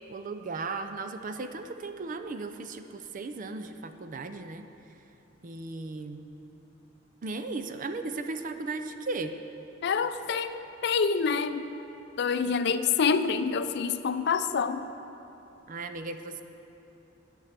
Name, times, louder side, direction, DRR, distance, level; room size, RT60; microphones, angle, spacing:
voice 1, 0.1-4.7 5.4-6.2 7.2-9.3 12.4-12.8 15.7-16.4, right 3 dB, 45° right, 8 dB, 0.5 m, -36 dB
voice 2, 9.8-11.6 12.2-14.8, left 5 dB, 60° left, 11 dB, 0.4 m, -27 dB
9.8 x 8.1 x 5.9 m, 2.9 s
head